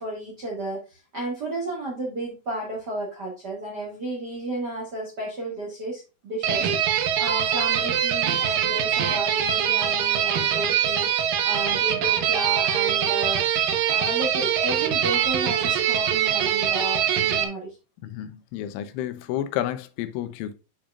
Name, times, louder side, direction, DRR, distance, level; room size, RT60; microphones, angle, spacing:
voice 1, 0.0-6.7 7.2-13.4 13.9-17.8, right 2 dB, 70° right, 0.9 m, -32 dB
sound 1, 6.4-17.4, right 9 dB, 85° right, 1.9 m, -23 dB
voice 2, 18.0-20.5, left 12 dB, 90° left, 3.3 m, -30 dB
8.7 x 5.2 x 2.4 m
omnidirectional pair, 5.4 m